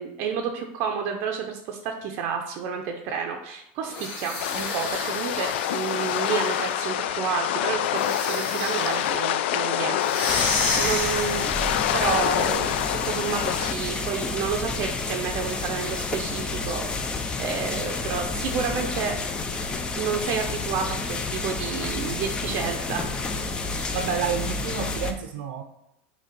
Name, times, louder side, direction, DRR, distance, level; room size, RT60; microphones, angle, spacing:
voice 1, 0.0-11.6 11.9-19.2 20.0-23.1 23.6-23.7, right 6 dB, 45° right, 3 dB, 0.5 m, -30 dB
sound 1, 3.9-6.8 7.9-9.1 10.0-11.7, left 3 dB, 60° left, 2.0 m, -31 dB
sound 2, 4.4-13.7, left 11 dB, 85° left, 0.3 m, -27 dB
sound 3, 10.3-25.1, left 3 dB, 15° left, 0.4 m, -30 dB
voice 2, 23.9-25.6, right 6 dB, 90° right, 5 dB, 0.6 m, -29 dB
6.6 x 3.3 x 5.2 m, 0.83 s
supercardioid pair, 165°, 6 cm